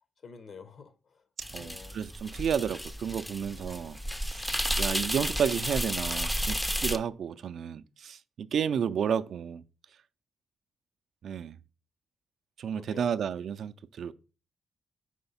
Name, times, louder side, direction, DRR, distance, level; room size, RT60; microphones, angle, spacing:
voice 1, 0.2-1.2 1.5-2.0 8.6-9.0 12.7-13.1, left 5 dB, 55° left, 0.7 m, -49 dB
sound 1, 1.4-7.0, equal, 5° left, 0.4 m, -32 dB
voice 2, 1.5-4.0 4.3-9.6 11.2-11.6 12.6-14.1, right 8 dB, 65° right, 0.3 m, -32 dB
4.8 x 3.5 x 5.5 m
cardioid pair, 105°, 0 cm